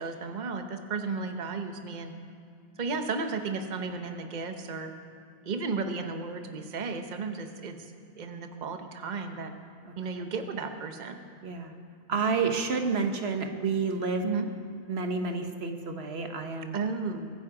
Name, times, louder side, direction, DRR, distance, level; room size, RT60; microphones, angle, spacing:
voice 1, 0.0-2.1 2.8-4.9 5.5-7.9 8.2-9.5 10.0-11.2 14.2-14.5 16.7-17.3, right 4 dB, 45° right, 6 dB, 1.0 m, -34 dB
voice 2, 11.4-11.7 12.1-14.2 14.9-16.7, right 4 dB, 85° right, 5 dB, 1.4 m, -29 dB
23.0 x 10.0 x 4.9 m, 2.4 s
omnidirectional pair, 1.0 m